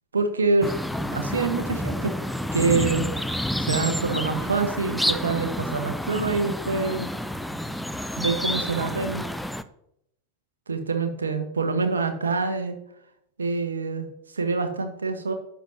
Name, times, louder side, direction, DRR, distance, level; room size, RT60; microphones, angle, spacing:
voice 1, 0.1-0.8 1.1-2.1 2.5-3.1 3.6-7.1 8.2-9.2 10.7-12.8 13.4-14.1 14.3-15.3, right 4 dB, 75° right, 7 dB, 1.1 m, -26 dB
sound 1, 0.6-9.6, equal, ahead, 0.4 m, -29 dB
11.5 x 7.1 x 2.8 m, 0.78 s
figure-of-eight pair, 90°, 0 cm